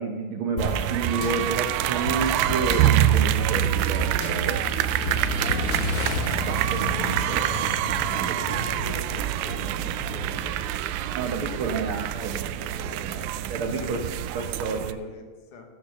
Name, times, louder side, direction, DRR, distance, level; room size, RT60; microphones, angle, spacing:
voice 1, 0.0-4.7 5.4-5.9 6.2-8.3 11.1-12.4 13.5-14.0 14.3-15.0, right 4 dB, 65° right, 3 dB, 1.3 m, -31 dB
sound 1, 0.6-6.9, right 1 dB, 35° left, 1.7 m, -34 dB
sound 2, 0.6-14.9, right 12 dB, 85° right, 2.0 m, -26 dB
Motorcycle / Engine, 0.8-10.5, left 6 dB, 65° left, 1.6 m, -35 dB
voice 2, 8.1-10.9 11.3-13.3 13.6-14.1 14.4-15.7, left 4 dB, 80° left, 4 dB, 3.0 m, -44 dB
14.5 x 6.9 x 6.8 m, 1.3 s
omnidirectional pair, 3.5 m